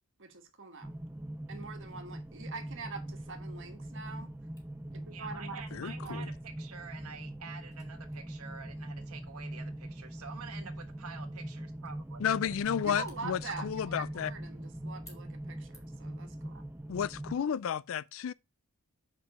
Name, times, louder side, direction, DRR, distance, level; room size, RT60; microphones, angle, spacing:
voice 1, 0.2-0.9 1.5-4.4 4.9-6.2 12.8-16.6, right 4 dB, 60° right, 1.5 m, -44 dB
sound 1, 0.8-17.4, right 1 dB, 10° right, 0.4 m, -42 dB
Camera, 4.6-16.2, left 1 dB, 15° left, 2.7 m, -65 dB
voice 2, 5.1-12.2, right 5 dB, 80° right, 1.4 m, -48 dB
voice 3, 5.7-6.2 12.2-14.3 16.9-18.3, left 8 dB, 60° left, 0.3 m, -32 dB
5.4 x 5.2 x 5.9 m
head